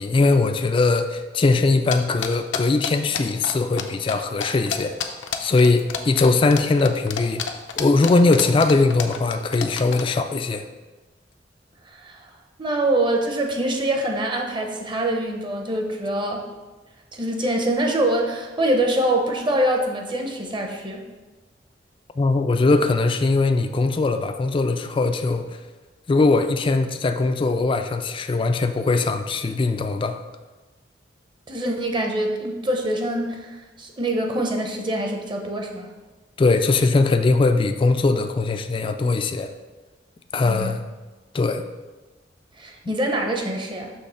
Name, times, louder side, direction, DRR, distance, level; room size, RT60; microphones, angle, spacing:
voice 1, 0.0-5.0 5.4-7.4 7.8-10.7 22.2-25.5 26.1-30.2 36.4-39.5 40.3-40.8 41.3-41.6, left 3 dB, 30° left, 8 dB, 0.3 m, -20 dB
sound 1, 1.9-3.8 4.1-4.2 4.4-10.0, left 7 dB, 80° left, 0.6 m, -28 dB
voice 2, 11.9-12.3 12.6-16.4 17.1-21.0 31.5-35.9 40.4-40.7 42.6-43.9, right 1 dB, 25° right, 2 dB, 0.7 m, -24 dB
6.4 x 3.2 x 5.5 m, 1.2 s
head